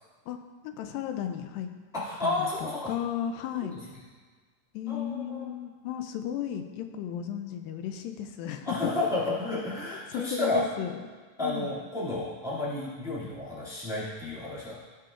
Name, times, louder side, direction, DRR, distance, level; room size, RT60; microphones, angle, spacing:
voice 1, 0.3-1.7 2.2-3.9 4.7-8.9 10.1-11.0 11.4-11.7, left 9 dB, 85° left, 7 dB, 2.3 m, -34 dB
voice 2, 1.9-2.9 3.6-3.8 4.9-5.5 8.6-10.6 11.4-14.8, left 2 dB, ahead, -9 dB, 1.4 m, -31 dB
15.0 x 5.7 x 2.5 m, 1.5 s
omnidirectional pair, 3.9 m